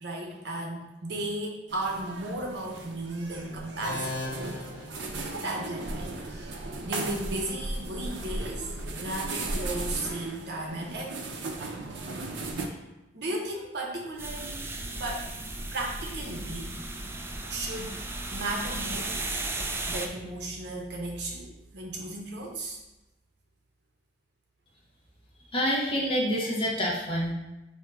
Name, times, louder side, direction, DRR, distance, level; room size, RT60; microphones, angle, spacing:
voice 1, 0.0-4.2 5.3-11.3 12.6-12.8 13.1-14.6 15.0-15.3 15.7-17.2 17.5-18.0 18.3-19.2 19.9-22.8, right 1 dB, 65° right, -1 dB, 0.8 m, -35 dB
sound 1, 1.7-12.7, right 2 dB, 85° right, 0.5 m, -36 dB
sound 2, 3.8-5.7, left 2 dB, 75° left, 1.0 m, -38 dB
sound 3, 14.2-20.1, right 2 dB, 15° right, 0.3 m, -35 dB
voice 2, 25.5-27.3, equal, 30° left, -4 dB, 0.9 m, -27 dB
4.5 x 2.7 x 3.4 m, 0.99 s
head